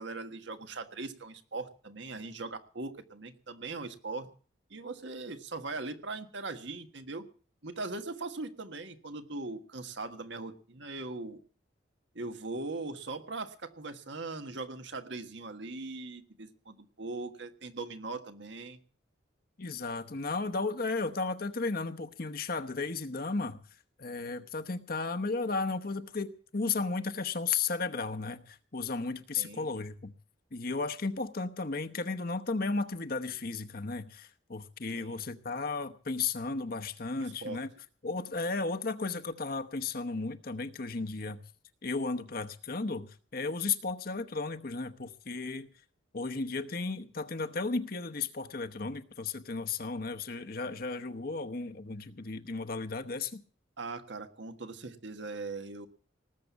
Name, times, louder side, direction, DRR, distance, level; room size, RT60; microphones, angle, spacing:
voice 1, 0.0-4.3 4.7-7.3 7.6-11.4 12.1-18.8 29.4-29.7 34.9-35.2 37.2-37.6 53.8-55.9, right 3 dB, 65° right, 8 dB, 1.6 m, -40 dB
voice 2, 19.6-23.6 24.0-30.1 30.5-37.7 38.0-41.4 41.8-45.7 46.1-53.4, left 4 dB, 50° left, 7 dB, 0.9 m, -34 dB
19.0 x 7.5 x 8.3 m, 0.42 s
head